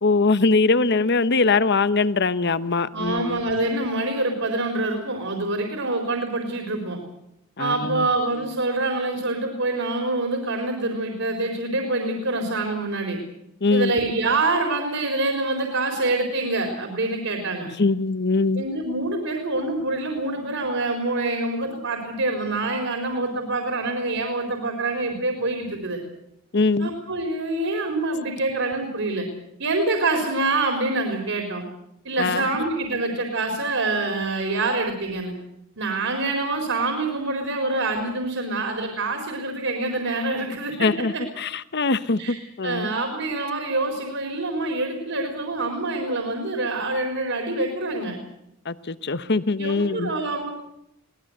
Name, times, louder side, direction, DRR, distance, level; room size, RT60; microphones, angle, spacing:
voice 1, 0.0-3.4 7.6-8.1 13.6-13.9 17.8-18.7 26.5-26.9 32.2-32.5 40.8-42.9 48.6-50.1, left 3 dB, 50° left, 15 dB, 1.0 m, -22 dB
voice 2, 2.9-7.0 7.6-13.2 13.7-17.7 18.6-26.0 26.8-29.3 29.6-31.6 32.0-35.3 35.8-41.2 42.2-42.4 42.6-48.2 49.6-50.5, right 2 dB, 65° right, 3 dB, 4.3 m, -26 dB
23.0 x 18.5 x 8.0 m, 0.78 s
head